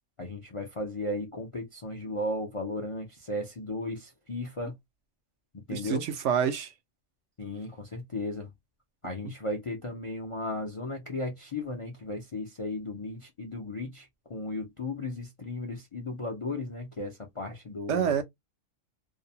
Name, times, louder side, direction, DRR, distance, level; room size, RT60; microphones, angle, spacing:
voice 1, 0.2-4.7 5.7-6.1 7.4-8.5 9.0-18.2, left 2 dB, 45° left, 0.4 m, -35 dB
voice 2, 5.7-6.7 17.9-18.2, right 8 dB, 70° right, 0.9 m, -27 dB
2.6 x 2.1 x 2.6 m
omnidirectional pair, 1.3 m